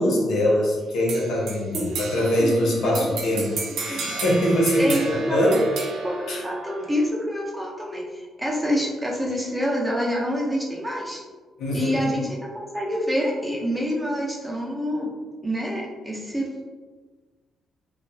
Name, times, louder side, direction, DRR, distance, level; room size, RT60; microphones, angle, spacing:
voice 1, 0.0-5.6 6.3-6.4 11.6-12.0, equal, 75° left, -4 dB, 0.8 m, -23 dB
sound 1, 1.1-7.1, right 4 dB, 80° right, 0.5 m, -33 dB
voice 2, 2.4-4.0 4.8-5.0 5.3-5.7 6.0-11.2 11.7-15.1 15.4-16.5, equal, 10° right, -3 dB, 0.6 m, -27 dB
2.7 x 2.3 x 2.3 m, 1.4 s
cardioid pair, 90°, 0 cm